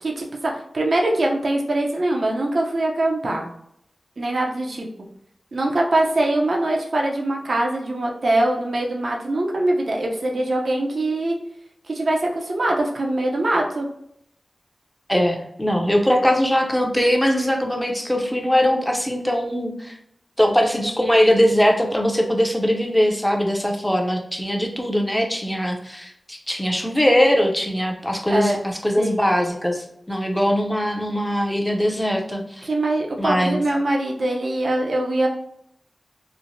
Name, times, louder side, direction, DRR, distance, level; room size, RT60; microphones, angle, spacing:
voice 1, 0.0-3.5 4.2-4.9 5.5-11.4 11.9-13.9 28.3-28.6 29.0-29.2 32.6-35.3, right 1 dB, 70° right, 0 dB, 0.6 m, -22 dB
voice 2, 15.1-20.0 20.4-32.7 33.2-33.6, equal, 10° left, 2 dB, 0.6 m, -21 dB
3.1 x 2.1 x 2.6 m, 0.73 s
cardioid pair, 45°, 0 cm